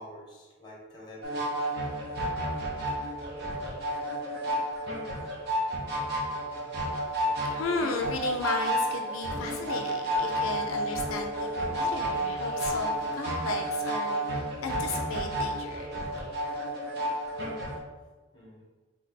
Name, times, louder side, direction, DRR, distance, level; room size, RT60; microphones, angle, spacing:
voice 1, 0.0-1.6 18.3-18.7, equal, 20° left, -3 dB, 1.2 m, -47 dB
sound 1, 1.2-17.8, right 1 dB, 50° right, 0.9 m, -31 dB
voice 2, 7.5-16.0, left 4 dB, 75° left, 4 dB, 0.4 m, -35 dB
3.4 x 3.3 x 4.0 m, 1.3 s
head